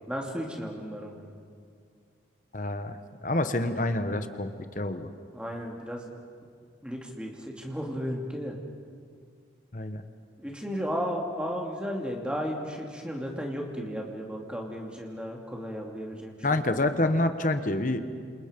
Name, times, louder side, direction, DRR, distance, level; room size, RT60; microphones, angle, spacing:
voice 1, 0.1-1.3 5.3-6.0 6.8-8.6 10.4-16.6, equal, 5° right, 0 dB, 2.7 m, -34 dB
voice 2, 2.5-5.1 9.7-10.0 16.4-18.0, left 2 dB, 45° left, 9 dB, 1.1 m, -27 dB
29.0 x 28.0 x 5.3 m, 2.2 s
head